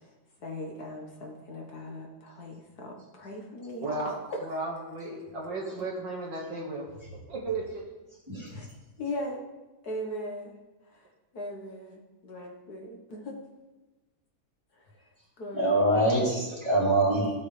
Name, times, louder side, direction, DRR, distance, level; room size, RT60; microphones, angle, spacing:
voice 1, 0.4-4.4 8.5-8.7 9.0-9.4 9.8-10.5 10.9-11.0 11.3-13.3 15.4-16.2, left 1 dB, 55° left, -1 dB, 1.7 m, -39 dB
voice 2, 3.8-4.2 4.4-6.9 7.3-7.8, right 2 dB, 65° right, -1 dB, 2.4 m, -34 dB
voice 3, 15.5-17.3, right 1 dB, 15° right, -5 dB, 3.0 m, -24 dB
15.0 x 8.7 x 3.3 m, 1.1 s
omnidirectional pair, 2.2 m